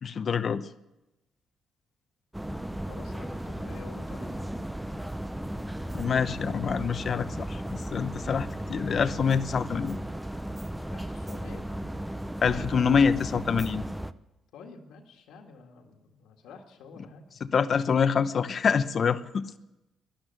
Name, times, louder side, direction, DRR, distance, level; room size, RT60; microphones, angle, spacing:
voice 1, 0.0-0.7 5.9-10.0 12.4-13.8 17.5-19.5, left 6 dB, 50° left, 13 dB, 0.8 m, -26 dB
sound 1, 2.3-14.1, right 1 dB, 5° right, 0.6 m, -35 dB
voice 2, 2.8-4.5 10.9-11.7 14.5-17.3, left 4 dB, 85° left, 3 dB, 1.9 m, -48 dB
12.5 x 11.5 x 9.0 m, 0.98 s
cardioid pair, 90°, 0 cm